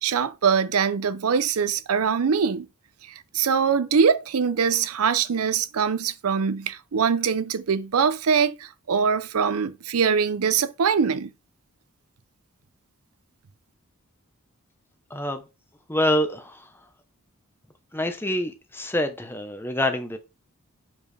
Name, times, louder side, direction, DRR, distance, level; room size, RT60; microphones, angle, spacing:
voice 1, 0.0-2.7 3.3-11.3, right 6 dB, 85° right, 0.5 m, -23 dB
voice 2, 15.1-15.4 15.9-16.7 17.9-20.2, left 1 dB, 10° left, 0.8 m, -26 dB
7.2 x 4.6 x 3.3 m
head